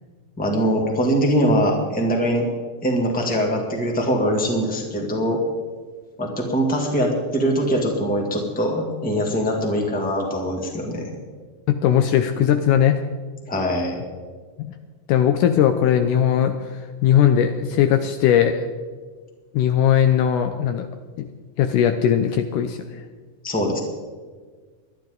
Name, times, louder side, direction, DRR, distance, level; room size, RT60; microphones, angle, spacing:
voice 1, 0.4-2.5 2.8-5.4 6.2-11.1 13.5-14.0 23.4-23.8, equal, 5° left, 0 dB, 1.5 m, -22 dB
voice 2, 11.7-13.0 14.6-14.7 15.1-18.6 19.5-20.9 21.2-21.3 21.6-22.8, left 9 dB, 75° left, 7 dB, 2.0 m, -19 dB
20.5 x 12.0 x 3.9 m, 1.5 s
omnidirectional pair, 4.0 m